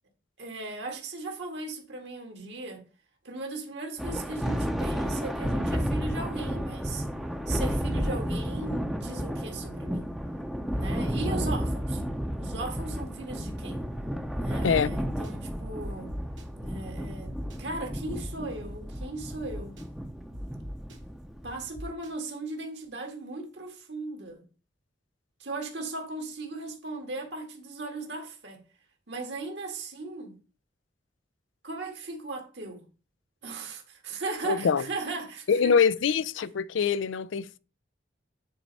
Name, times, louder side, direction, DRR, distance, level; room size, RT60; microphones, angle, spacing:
voice 1, 0.4-2.8 3.2-7.1 7.5-10.1 10.7-12.0 12.4-13.8 14.3-16.1 16.6-19.8 21.4-24.4 25.4-28.6 29.1-30.3 31.6-32.8 33.4-35.8, right 3 dB, 65° right, 2.0 m, -37 dB
Thunder, 4.0-21.7, equal, ahead, 0.7 m, -32 dB
sound 1, 14.7-14.8 15.1-15.3 15.8-16.4 16.9-17.0 17.4-17.6 18.1-19.0 19.5-19.8 20.3-21.0 21.7-22.1, equal, 85° right, 1.8 m, -41 dB
voice 2, 34.5-34.8 35.5-37.6, left 6 dB, 90° left, 0.4 m, -24 dB
9.1 x 4.3 x 4.1 m
head